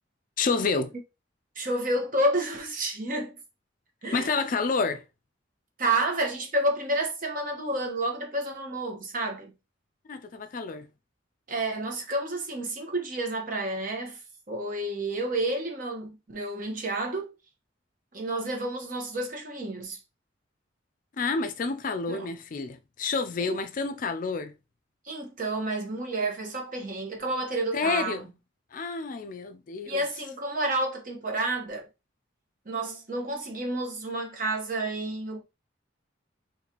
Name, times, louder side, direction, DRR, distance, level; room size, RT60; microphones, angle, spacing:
voice 1, 0.4-0.9 4.1-5.0 10.1-10.9 21.2-24.5 27.7-28.3 28.7-30.0, left 4 dB, 45° left, 0.4 m, -29 dB
voice 2, 1.5-3.4 4.0-4.4 5.8-9.5 11.5-14.2 14.5-17.3 18.1-20.0 22.1-22.3 23.4-23.6 25.0-28.2 29.8-31.9 32.6-35.4, right 1 dB, 45° right, 1.1 m, -30 dB
4.1 x 3.2 x 2.9 m
head